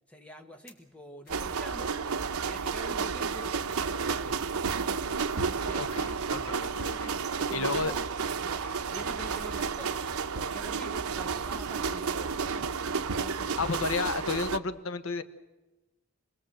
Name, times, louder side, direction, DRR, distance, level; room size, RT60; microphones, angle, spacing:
voice 1, 0.1-2.0 2.4-3.6 4.0-4.5 5.6-5.9 7.4-8.1 8.4-10.0 10.3-13.7, right 1 dB, 5° left, 1.4 m, -46 dB
sound 1, 0.6-0.9 1.2-1.5 4.6-5.4 7.5-7.8 9.9-10.1 12.0-12.5, left 4 dB, 40° left, 3.1 m, -60 dB
sound 2, 1.3-14.6, right 5 dB, 85° right, 0.8 m, -31 dB
voice 2, 5.8-7.1 7.5-7.9 13.6-15.2, left 4 dB, 70° left, 1.1 m, -32 dB
27.5 x 20.5 x 7.9 m
head